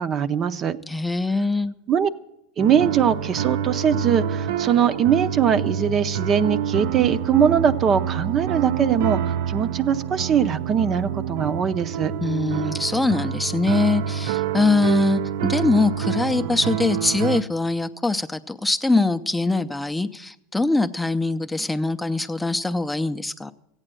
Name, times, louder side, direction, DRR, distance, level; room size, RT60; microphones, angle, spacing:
voice 1, 0.0-0.8 1.9-2.1 2.6-12.1, right 8 dB, 40° right, 12 dB, 0.6 m, -21 dB
voice 2, 0.9-1.7 12.2-23.5, left 3 dB, 10° left, 9 dB, 0.5 m, -23 dB
sound 1, 2.6-17.4, right 9 dB, 80° right, 0.5 m, -27 dB
14.5 x 8.9 x 7.6 m, 0.81 s
supercardioid pair, 105°, 0 cm